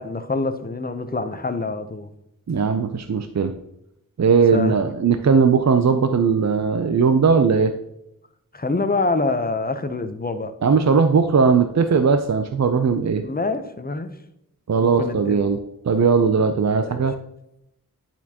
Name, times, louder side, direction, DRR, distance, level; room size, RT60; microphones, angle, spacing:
voice 1, 0.0-2.1 4.5-4.8 8.5-10.5 13.2-14.1 14.8-15.4 16.8-17.0, left 3 dB, 25° left, 0.7 m, -26 dB
voice 2, 2.5-3.5 4.2-7.7 10.6-13.2 14.7-15.6 15.9-17.1, right 5 dB, 50° right, 0.5 m, -18 dB
10.5 x 4.4 x 2.9 m
wide cardioid pair, 45°, 35 cm